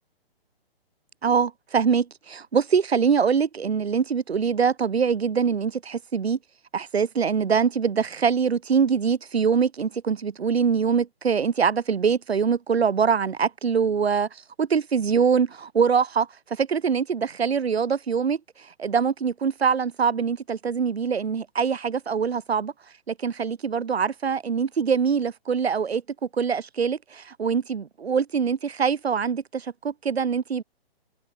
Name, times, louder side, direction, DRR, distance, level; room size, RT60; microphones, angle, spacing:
voice 1, 1.2-6.4 6.7-14.3 14.6-22.7 23.1-26.0 26.3-30.6, right 6 dB, 85° right, 1.5 m, -24 dB
hypercardioid pair, 150°, 31 cm